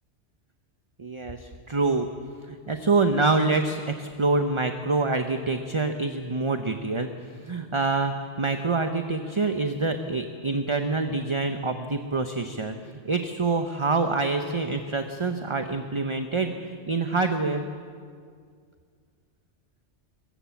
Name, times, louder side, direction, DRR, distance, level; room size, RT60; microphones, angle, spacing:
voice 1, 1.0-2.1 2.5-7.1 7.4-12.7 13.0-17.6, right 3 dB, 25° right, 6 dB, 0.9 m, -26 dB
23.0 x 22.5 x 7.2 m, 2.1 s
omnidirectional pair, 1.2 m